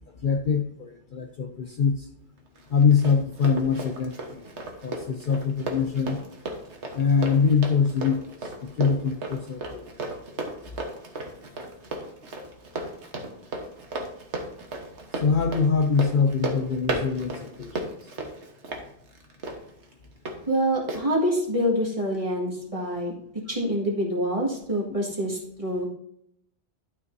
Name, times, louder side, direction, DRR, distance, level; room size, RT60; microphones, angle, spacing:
voice 1, 0.2-2.1 2.7-4.5 4.8-6.2 6.9-9.8 10.1-10.2 15.1-17.8 24.9-25.0, left 5 dB, 55° left, 5 dB, 0.7 m, -24 dB
Run, 2.6-20.4 20.9-21.0, right 2 dB, 75° right, 1.5 m, -35 dB
voice 2, 20.5-23.1 23.5-25.9, equal, 30° right, -2 dB, 2.0 m, -26 dB
12.0 x 5.9 x 2.7 m, 0.74 s
omnidirectional pair, 1.2 m